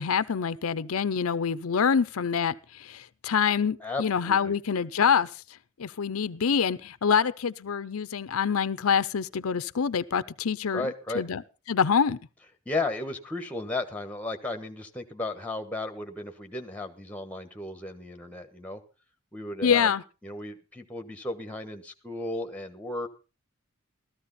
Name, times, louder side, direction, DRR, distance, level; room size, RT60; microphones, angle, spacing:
voice 1, 0.0-5.3 5.8-10.8 11.1-11.4 11.7-12.2 19.6-20.0, left 6 dB, 85° left, 0.6 m, -26 dB
voice 2, 3.8-4.5 10.7-11.2 12.6-18.8 19.3-19.9 20.2-23.1, left 2 dB, 5° left, 1.3 m, -34 dB
14.5 x 13.5 x 4.1 m
head